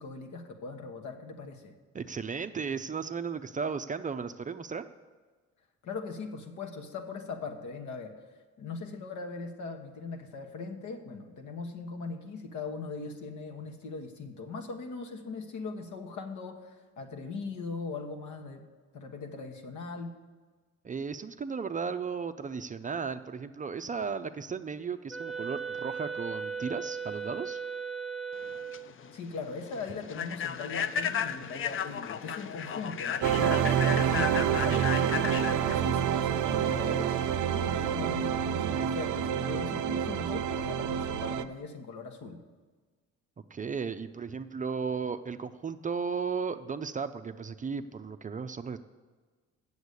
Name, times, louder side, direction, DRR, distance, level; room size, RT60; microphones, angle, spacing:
voice 1, 0.0-1.7 5.8-8.2 8.6-18.6 18.9-20.1 29.1-42.4, left 4 dB, 75° left, 5 dB, 1.3 m, -40 dB
voice 2, 1.9-4.8 20.8-27.6 43.5-48.8, right 5 dB, 25° right, 9 dB, 0.4 m, -35 dB
Wind instrument woodwind instrument, 25.1-28.9, right 6 dB, ahead, 0.8 m, -37 dB
Human voice / Train, 28.4-37.3, left 8 dB, 45° left, 0.5 m, -35 dB
sound 1, 33.2-41.4, right 9 dB, 80° right, 0.5 m, -28 dB
8.1 x 7.1 x 8.2 m, 1.4 s
cardioid pair, 90°, 30 cm